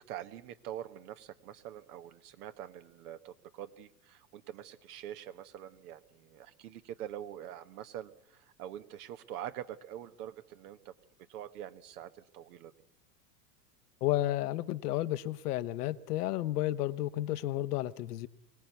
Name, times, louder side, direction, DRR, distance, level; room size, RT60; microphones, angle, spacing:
voice 1, 0.1-10.9 11.3-12.7, right 11 dB, 65° right, 11 dB, 1.5 m, -45 dB
voice 2, 14.0-18.3, left 14 dB, 65° left, 12 dB, 1.1 m, -32 dB
24.0 x 18.0 x 8.2 m, 0.80 s
hypercardioid pair, 90°, 49 cm